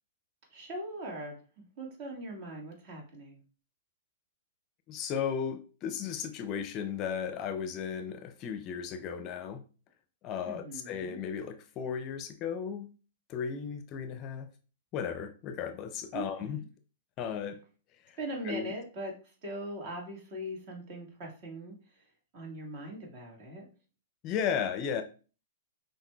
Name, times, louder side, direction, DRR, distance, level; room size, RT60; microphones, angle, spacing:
voice 1, 0.5-3.4 10.4-11.2 16.1-16.7 18.2-22.0 22.3-23.7, right 1 dB, 50° right, 0 dB, 1.6 m, -41 dB
voice 2, 4.9-9.6 10.2-12.9 13.3-14.5 14.9-16.6 17.2-17.6 18.1-18.2 18.4-18.7 24.2-25.0, left 7 dB, 35° left, 8 dB, 0.4 m, -35 dB
5.7 x 2.6 x 2.3 m, 0.36 s
hypercardioid pair, 115°, 0 cm